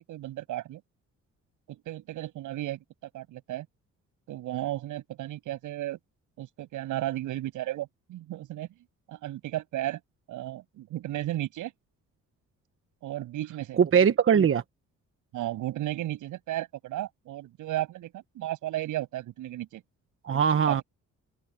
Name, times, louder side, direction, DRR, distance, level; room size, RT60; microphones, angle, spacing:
voice 1, 0.1-0.8 1.7-3.7 4.3-6.0 6.4-8.7 9.1-10.0 10.3-11.7 13.0-13.8 15.3-19.8 20.6-20.8, right 14 dB, 85° right, 7.9 m, -34 dB
voice 2, 13.8-14.6 20.2-20.8, right 7 dB, 45° right, 1.2 m, -21 dB
cardioid pair, 90°, 30 cm